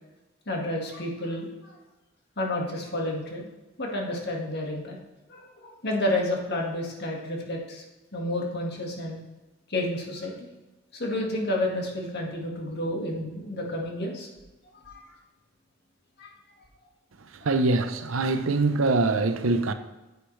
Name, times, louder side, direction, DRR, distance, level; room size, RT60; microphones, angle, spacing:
voice 1, 0.5-1.7 2.4-3.5 3.8-5.0 5.3-7.8 8.1-9.2 9.7-10.5 10.9-14.3 14.8-15.0 16.2-16.3, left 1 dB, 55° left, 1.8 m, -30 dB
voice 2, 17.4-19.7, right 3 dB, 90° right, 0.7 m, -23 dB
9.6 x 8.0 x 3.3 m
head